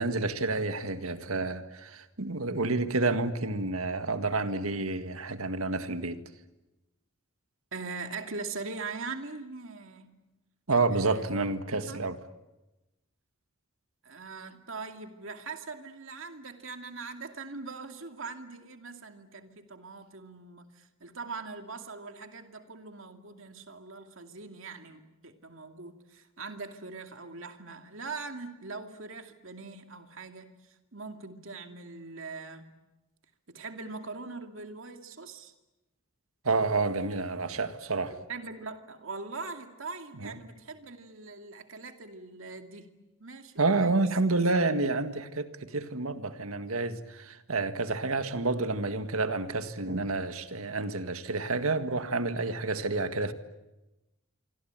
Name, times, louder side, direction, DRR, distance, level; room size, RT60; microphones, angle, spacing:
voice 1, 0.0-6.2 10.7-12.2 36.4-38.1 40.2-40.3 43.6-53.3, right 3 dB, 85° right, 1.8 m, -29 dB
voice 2, 7.7-10.2 10.9-11.3 11.7-12.0 14.0-32.7 33.5-35.5 38.1-42.9 43.2-44.1, right 4 dB, 70° right, 2.4 m, -42 dB
27.0 x 24.5 x 9.0 m
head